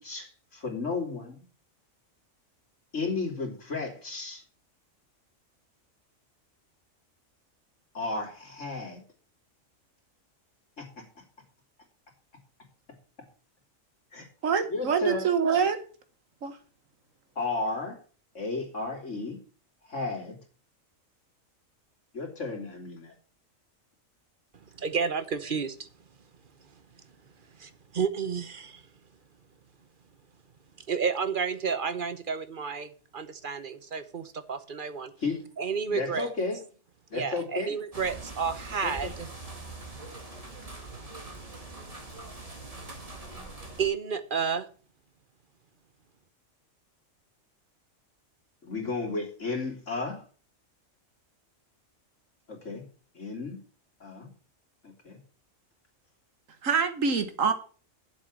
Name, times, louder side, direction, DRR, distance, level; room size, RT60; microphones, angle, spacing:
voice 1, 0.0-1.4 2.9-4.4 7.9-9.0 10.8-11.1 14.1-14.3 14.7-15.3 17.4-18.0 18.4-19.4 19.9-20.4 22.1-23.1 35.2-35.4 35.9-36.6 37.1-37.8 38.8-39.1 48.6-50.2 52.5-52.8 53.2-53.6 54.0-54.3 54.8-55.2, left 3 dB, 65° left, 3.4 m, -33 dB
voice 2, 14.4-15.8 16.4-16.6 56.6-57.5, right 6 dB, 80° right, 1.7 m, -25 dB
voice 3, 24.7-25.9 27.6-28.8 30.9-35.1 35.6-36.3 37.1-39.3 43.8-44.7, right 6 dB, 45° right, 1.0 m, -31 dB
sound 1, 37.9-43.9, right 3 dB, 25° right, 2.2 m, -43 dB
7.8 x 7.7 x 7.5 m
omnidirectional pair, 1.4 m